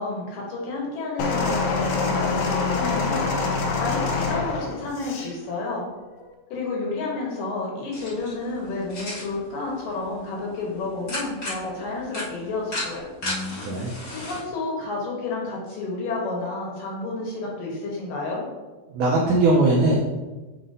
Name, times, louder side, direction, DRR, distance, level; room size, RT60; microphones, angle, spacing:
voice 1, 0.0-5.8 6.5-13.0 14.1-18.4, left 3 dB, 65° left, -2 dB, 2.6 m, -30 dB
sound 1, 1.2-5.3 6.2-6.3, left 4 dB, 85° left, 1.7 m, -25 dB
sound 2, 7.9-14.4, left 1 dB, 45° left, 1.4 m, -36 dB
voice 2, 13.2-13.9 19.0-20.0, right 2 dB, 85° right, -3 dB, 1.7 m, -20 dB
9.2 x 4.3 x 2.7 m, 1.2 s
omnidirectional pair, 4.6 m